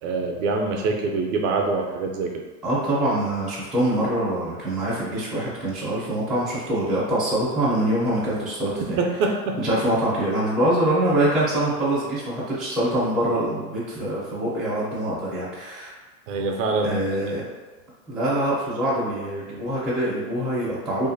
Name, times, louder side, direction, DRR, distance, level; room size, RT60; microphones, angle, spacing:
voice 1, 0.0-2.4 8.8-9.6 16.3-17.4, right 3 dB, 55° right, 2 dB, 0.5 m, -25 dB
voice 2, 2.6-9.0 9.6-15.9 16.8-17.4 18.1-21.1, right 1 dB, ahead, -9 dB, 0.4 m, -24 dB
2.6 x 2.5 x 2.5 m, 1.3 s
hypercardioid pair, 125°, 48 cm